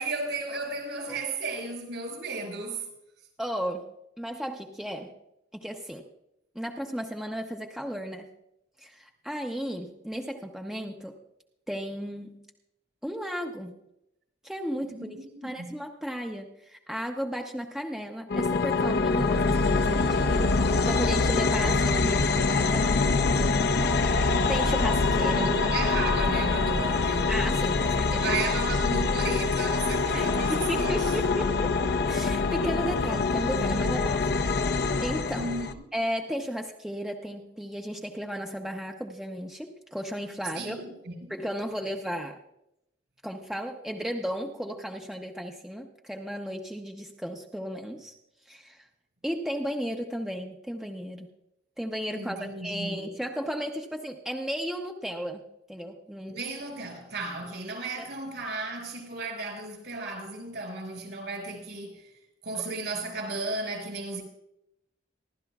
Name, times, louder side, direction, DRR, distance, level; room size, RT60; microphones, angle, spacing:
voice 1, 0.0-2.9 14.9-15.7 25.3-27.3 28.0-31.1 35.3-35.8 40.5-41.3 52.1-53.1 56.3-62.1 62.4-64.2, right 3 dB, 70° right, 5.1 m, -34 dB
voice 2, 3.4-3.9 4.2-5.1 5.5-6.0 6.5-8.3 8.8-11.2 11.7-12.4 13.0-13.8 14.4-15.2 15.4-20.6 20.8-25.5 27.3-28.2 30.1-34.4 34.8-35.5 35.9-40.8 41.3-42.4 43.2-48.1 48.5-48.9 49.2-51.3 51.8-55.4 55.7-56.4 58.0-58.1 62.6-62.7, equal, ahead, 0.7 m, -34 dB
sound 1, 18.3-35.7, left 3 dB, 55° left, 0.7 m, -25 dB
27.0 x 12.0 x 2.4 m
head